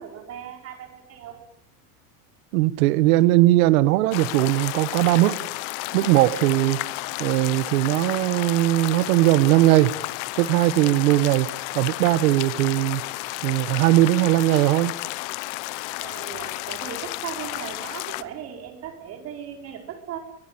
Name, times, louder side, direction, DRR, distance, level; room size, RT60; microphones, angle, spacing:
voice 1, 0.0-1.4 16.0-20.2, right 8 dB, 35° right, 5 dB, 5.1 m, -37 dB
voice 2, 2.5-5.4 5.9-6.8 7.2-10.0 10.4-13.0 13.4-15.0, right 17 dB, 70° right, 16 dB, 1.5 m, -19 dB
sound 1, 4.1-18.2, left 21 dB, 55° left, 1.2 m, -32 dB
24.0 x 20.0 x 8.9 m, 0.84 s
supercardioid pair, 165°, 43 cm